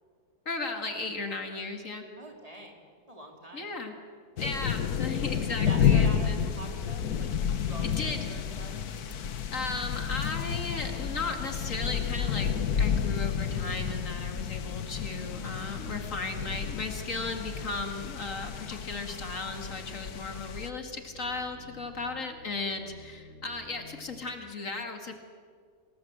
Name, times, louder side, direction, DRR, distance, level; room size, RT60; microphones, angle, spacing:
voice 1, 0.5-2.1 3.5-3.9 4.4-6.4 7.8-8.4 9.5-25.1, left 3 dB, 60° left, 4 dB, 2.4 m, -36 dB
voice 2, 2.2-3.7 5.5-8.9 21.9-22.2, right 1 dB, 25° right, 1 dB, 3.4 m, -45 dB
sound 1, 4.4-20.7, left 8 dB, 85° left, 1.6 m, -30 dB
sound 2, 14.1-24.2, right 1 dB, 40° left, 3.9 m, -51 dB
28.0 x 19.5 x 7.9 m, 2.1 s
omnidirectional pair, 1.6 m